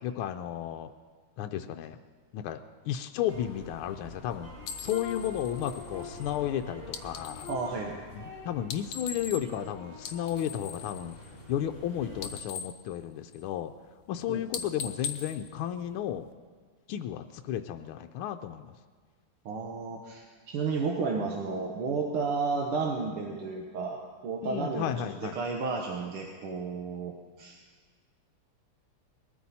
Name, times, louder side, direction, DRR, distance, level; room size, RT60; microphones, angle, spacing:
voice 1, 0.0-0.9 1.4-2.0 2.3-2.6 2.9-4.5 4.8-7.5 8.1-11.1 11.5-13.7 14.1-16.3 16.9-18.7 24.4-25.3, left 10 dB, 80° left, 6 dB, 1.4 m, -33 dB
sound 1, 3.3-12.3, left 3 dB, 30° left, 6.7 m, -45 dB
sound 2, 4.6-7.7 8.6-9.7 9.9-11.8 12.1-13.7 14.0-14.2 14.5-16.3, left 6 dB, 65° left, 1.4 m, -41 dB
voice 2, 7.5-8.0 14.3-14.4 19.5-27.6, right 4 dB, 80° right, 1 dB, 2.0 m, -32 dB
20.5 x 14.0 x 4.2 m, 1.5 s
omnidirectional pair, 2.4 m